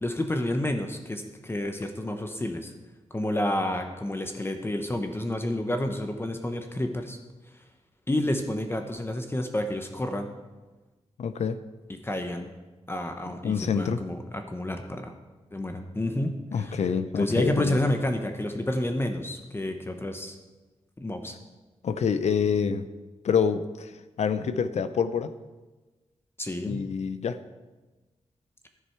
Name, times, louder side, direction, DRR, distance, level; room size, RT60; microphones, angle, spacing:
voice 1, 0.0-2.7 3.1-7.2 8.1-10.3 12.0-12.5 12.9-15.1 15.5-16.8 17.2-20.4 21.0-21.3 26.4-26.8, left 1 dB, 20° left, 5 dB, 1.0 m, -29 dB
voice 2, 11.2-11.6 13.4-14.0 16.5-17.8 21.8-22.8 23.2-23.9 24.2-25.3 26.6-27.4, left 6 dB, 70° left, 13 dB, 0.6 m, -26 dB
11.5 x 9.8 x 4.6 m, 1.2 s
cardioid pair, 85°, 12 cm